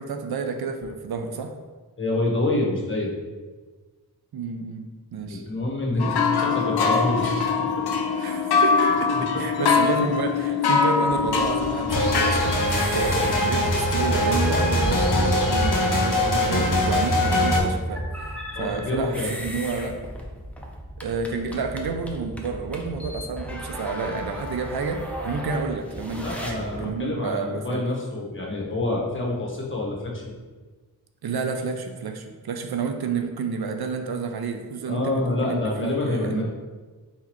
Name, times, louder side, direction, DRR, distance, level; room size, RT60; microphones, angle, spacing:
voice 1, 0.0-1.5 4.3-5.4 8.1-20.0 21.0-27.8 31.2-36.4, right 5 dB, 75° right, 5 dB, 0.5 m, -30 dB
voice 2, 2.0-3.1 5.2-7.4 8.5-8.6 9.3-9.4 9.9-10.0 18.5-19.3 26.2-30.3 34.9-36.4, left 2 dB, 30° left, -2 dB, 1.1 m, -27 dB
sound 1, 6.0-12.9, left 5 dB, 80° left, 0.6 m, -23 dB
sound 2, 11.1-26.9, equal, 5° left, 0.6 m, -33 dB
sound 3, 11.9-17.6, left 1 dB, 55° left, 0.9 m, -22 dB
4.2 x 3.9 x 3.0 m, 1.3 s
wide cardioid pair, 65°, 38 cm